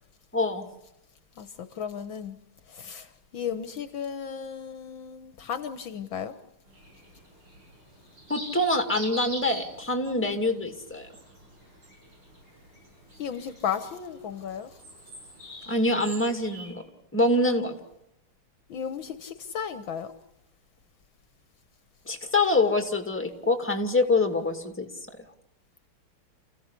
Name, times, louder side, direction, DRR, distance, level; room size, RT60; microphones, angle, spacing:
voice 1, 0.3-0.7 8.3-11.1 15.7-16.8 17.1-17.8 22.1-24.9, left 2 dB, 5° left, 6 dB, 2.3 m, -25 dB
voice 2, 1.4-2.4 2.7-3.1 3.3-6.3 13.2-14.7 18.7-20.1, left 7 dB, 65° left, 11 dB, 1.8 m, -34 dB
sound 1, 6.7-16.7, equal, 70° right, 8.8 m, -45 dB
29.0 x 16.0 x 8.2 m, 0.91 s
omnidirectional pair, 2.3 m